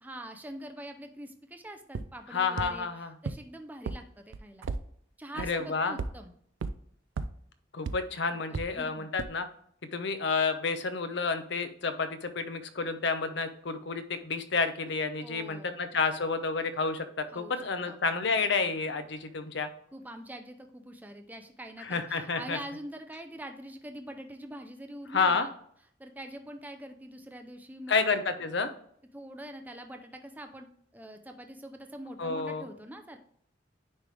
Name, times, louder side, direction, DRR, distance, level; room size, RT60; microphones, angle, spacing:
voice 1, 0.0-2.9 3.2-4.7 5.2-6.3 8.3-9.0 15.2-15.8 17.3-18.2 19.9-25.5 26.0-28.0 29.1-33.2, right 1 dB, 10° right, 5 dB, 0.5 m, -44 dB
sound 1, 1.9-2.0 2.6-2.7 3.3-3.4 3.9-4.0 4.3-4.8 5.4-5.5 6.0-6.1 6.6-6.7 7.2-7.3 7.9-8.0 8.5-8.6 9.2-9.3, right 4 dB, 85° right, 0.4 m, -32 dB
voice 2, 2.3-3.1 5.4-6.0 7.7-9.5 9.9-19.7 21.8-22.6 25.1-25.5 27.9-28.7 32.2-32.7, left 4 dB, 65° left, 10 dB, 0.7 m, -30 dB
9.7 x 3.2 x 3.4 m, 0.65 s
head